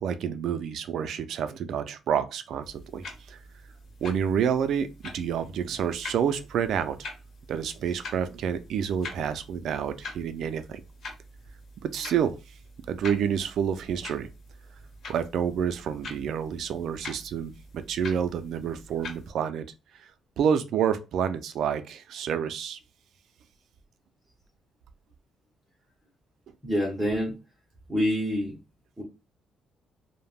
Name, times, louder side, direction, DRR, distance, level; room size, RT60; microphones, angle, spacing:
voice 1, 0.0-3.4 4.0-7.1 7.5-10.8 11.8-12.4 12.9-14.3 15.1-19.7 20.0-20.1 20.4-22.8, right 8 dB, 70° right, 0.3 m, -28 dB
sound 1, 2.6-19.3, left 2 dB, 55° left, 0.9 m, -45 dB
voice 2, 26.6-27.4 27.9-28.6 29.0-29.1, equal, 10° right, 0.9 m, -26 dB
3.3 x 2.0 x 2.3 m
cardioid pair, 115°, 0 cm